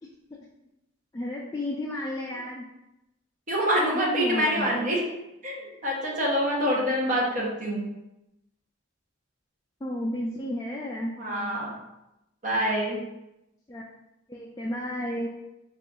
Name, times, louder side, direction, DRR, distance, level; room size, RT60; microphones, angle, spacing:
voice 1, 1.1-2.6 3.9-4.9 9.8-11.1 13.7-13.8 14.3-15.3, left 1 dB, 15° left, -5 dB, 0.3 m, -32 dB
voice 2, 3.5-5.0 5.4-7.9 11.2-11.8 12.4-13.0, equal, 40° right, -3 dB, 0.9 m, -26 dB
3.7 x 2.4 x 3.7 m, 0.90 s
head